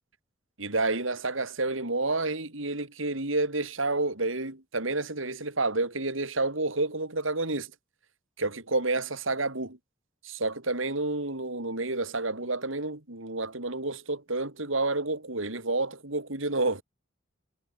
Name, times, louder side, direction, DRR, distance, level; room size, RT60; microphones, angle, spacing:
voice 1, 0.6-7.7 8.4-9.8 10.2-16.8, right 2 dB, 80° right, 4.1 m, -29 dB
head